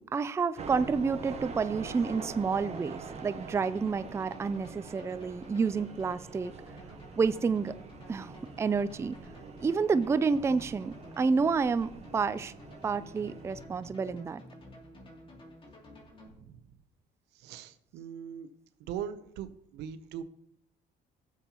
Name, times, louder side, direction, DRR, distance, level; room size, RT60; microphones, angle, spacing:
voice 1, 0.0-6.5 7.2-7.7 8.1-9.2 9.6-12.5 12.8-14.4, right 5 dB, 15° right, 14 dB, 0.3 m, -29 dB
sound 1, 0.6-13.6, right 5 dB, 40° right, 1.2 m, -45 dB
sound 2, 2.1-16.3, left 1 dB, 30° left, 2.7 m, -52 dB
voice 2, 6.7-7.1 13.6-13.7 16.5-16.6 17.3-18.5 18.8-19.5 19.7-20.2, right 9 dB, 85° right, 12 dB, 0.8 m, -41 dB
15.5 x 7.3 x 3.0 m, 0.72 s
cardioid pair, 110°, 17 cm